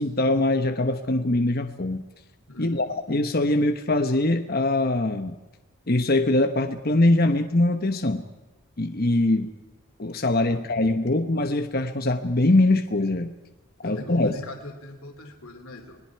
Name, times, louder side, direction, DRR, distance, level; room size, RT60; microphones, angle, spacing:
voice 1, 0.0-2.0 2.6-5.3 5.9-8.2 8.8-9.5 10.0-13.3 13.8-14.4, left 2 dB, 45° left, 6 dB, 1.0 m, -22 dB
voice 2, 2.5-2.8 10.5-10.6 13.8-16.0, left 2 dB, 70° left, 3 dB, 2.9 m, -41 dB
29.5 x 21.0 x 4.7 m, 1.1 s
head